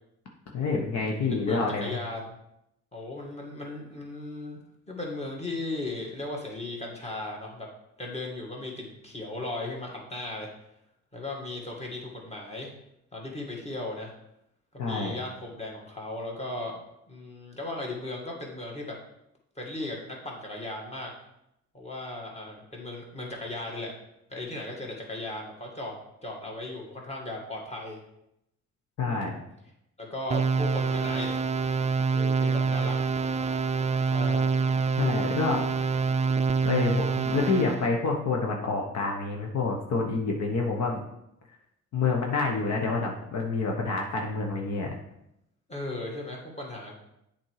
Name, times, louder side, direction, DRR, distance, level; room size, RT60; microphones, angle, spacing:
voice 1, 0.5-2.0 14.8-15.1 29.0-29.3 35.0-35.6 36.6-41.0 41.9-44.9, left 4 dB, 65° left, 0 dB, 1.2 m, -27 dB
voice 2, 1.1-2.3 2.9-4.6 4.9-7.7 8.0-10.5 11.1-12.7 13.1-14.1 14.7-19.0 19.6-21.1 21.7-24.0 24.3-28.0 29.0-29.3 30.0-31.4 32.1-33.0 34.0-34.6 45.7-46.9, left 2 dB, 20° left, -1 dB, 2.2 m, -37 dB
sound 1, 30.3-37.9, right 4 dB, 25° right, 0.4 m, -26 dB
7.6 x 4.5 x 4.8 m, 0.80 s
cardioid pair, 90°, 30 cm